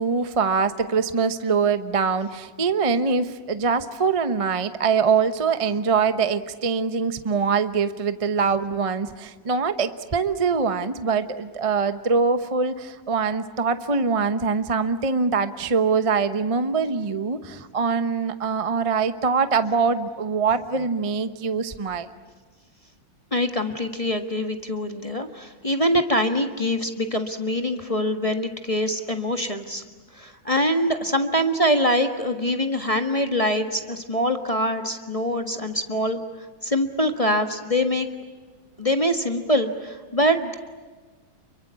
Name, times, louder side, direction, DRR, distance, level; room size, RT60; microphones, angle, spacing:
voice 1, 0.0-22.1, right 5 dB, 25° right, 10 dB, 0.8 m, -23 dB
voice 2, 23.3-29.8 30.1-36.2 36.6-38.1 38.8-40.6, equal, 20° left, 5 dB, 1.5 m, -24 dB
29.5 x 23.5 x 8.4 m, 1.4 s
omnidirectional pair, 2.1 m